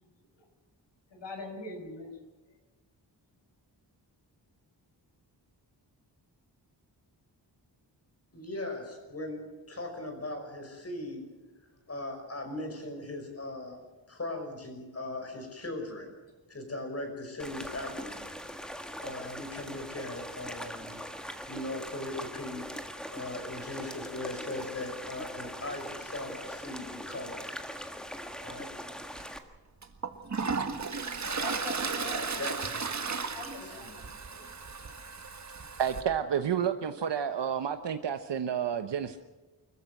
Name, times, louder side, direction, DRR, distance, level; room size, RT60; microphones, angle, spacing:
voice 1, 1.1-2.1 31.4-32.5 33.3-34.4, left 2 dB, 75° left, 5 dB, 5.9 m, -43 dB
voice 2, 8.3-11.3 11.9-13.8 14.1-16.1 16.5-18.2 18.7-21.0 21.5-22.9 23.1-27.4 28.4-28.7 30.9-31.6 32.0-34.1, left 2 dB, 35° left, 4 dB, 5.7 m, -39 dB
sound 1, 17.4-29.4, equal, ahead, 1.6 m, -41 dB
Toilet flush, 29.2-29.3 29.8-36.0, right 5 dB, 40° right, 1.6 m, -35 dB
voice 3, 35.8-39.2, right 8 dB, 70° right, 8 dB, 1.1 m, -30 dB
25.0 x 14.5 x 7.8 m, 1.2 s
wide cardioid pair, 150°, 44 cm